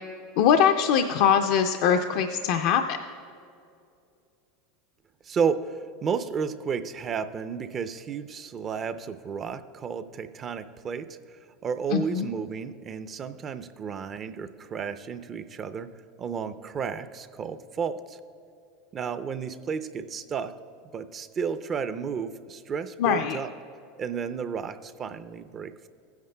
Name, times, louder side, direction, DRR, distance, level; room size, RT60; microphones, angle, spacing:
voice 1, 0.4-3.0 11.9-12.3 23.0-23.4, left 8 dB, 65° left, 6 dB, 0.4 m, -22 dB
voice 2, 5.2-11.2 11.6-15.9 16.2-18.2 18.9-20.6 20.9-23.5 24.0-25.9, right 6 dB, 35° right, 11 dB, 0.4 m, -32 dB
15.5 x 9.4 x 2.2 m, 2.5 s
hypercardioid pair, 105°, 0 cm